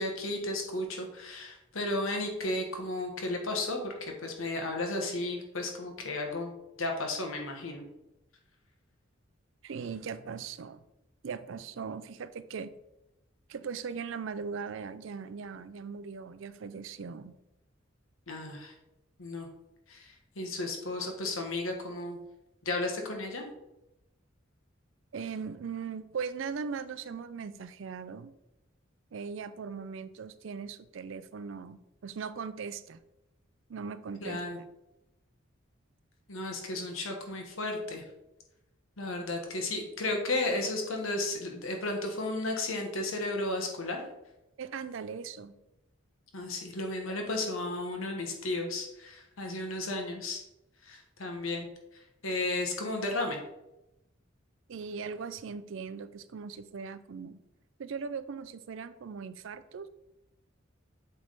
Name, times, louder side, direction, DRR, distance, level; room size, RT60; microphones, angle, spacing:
voice 1, 0.0-6.5 6.8-7.8 18.3-18.7 19.2-19.5 19.9-22.2 22.6-23.4 34.2-34.6 36.3-38.0 39.0-44.0 46.3-50.4 50.8-51.7 52.2-53.4, left 2 dB, 85° left, 3 dB, 1.3 m, -34 dB
voice 2, 9.6-10.8 11.2-12.7 13.5-17.4 25.1-28.3 29.1-33.0 33.7-34.6 44.6-45.5 54.7-57.4 57.8-59.9, right 5 dB, 70° right, 13 dB, 0.4 m, -39 dB
7.9 x 3.6 x 4.0 m, 0.91 s
head